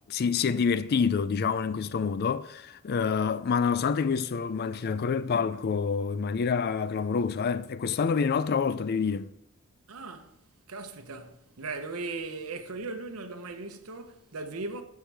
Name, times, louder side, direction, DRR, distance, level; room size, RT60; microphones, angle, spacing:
voice 1, 0.1-9.3, left 6 dB, 45° left, 0.4 m, -27 dB
voice 2, 9.9-10.4 10.7-14.8, right 3 dB, 85° right, 0.9 m, -38 dB
13.5 x 4.7 x 3.4 m
head